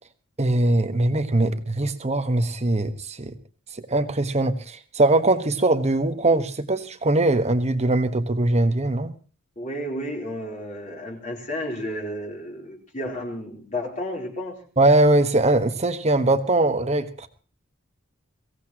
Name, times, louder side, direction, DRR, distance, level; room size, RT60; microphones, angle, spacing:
voice 1, 0.4-3.4 3.9-9.1 14.8-17.3, right 2 dB, 30° right, 9 dB, 1.3 m, -21 dB
voice 2, 9.6-14.6, left 1 dB, 35° left, -1 dB, 3.8 m, -32 dB
22.5 x 17.0 x 3.0 m, 0.36 s
head